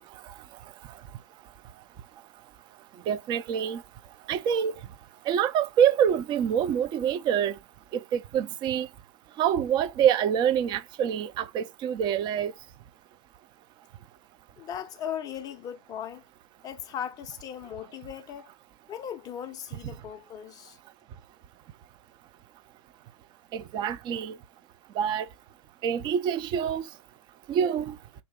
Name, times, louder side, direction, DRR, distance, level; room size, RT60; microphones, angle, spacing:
voice 1, 0.1-7.6 7.9-8.9 9.3-12.7 21.1-21.2 23.5-24.4 24.9-25.3 25.8-27.0 27.5-28.1, right 9 dB, 25° right, 0.6 m, -27 dB
voice 2, 14.6-16.2 16.6-18.5 18.9-20.8, left 9 dB, 25° left, 0.6 m, -38 dB
4.0 x 2.7 x 3.7 m
figure-of-eight pair, 100°, 16 cm